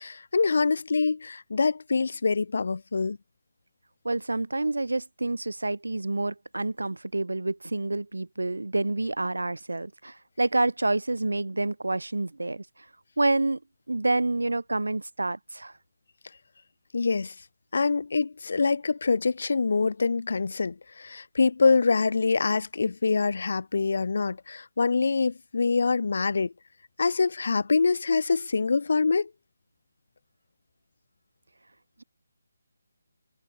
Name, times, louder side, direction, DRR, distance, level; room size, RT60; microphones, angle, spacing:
voice 1, 0.0-3.2 16.9-17.3 17.7-26.5 27.0-29.3, left 4 dB, 50° left, 0.9 m, -25 dB
voice 2, 4.0-12.6 13.2-13.6 13.9-15.7, right 2 dB, 70° right, 1.2 m, -28 dB
figure-of-eight pair, 150°, 0 cm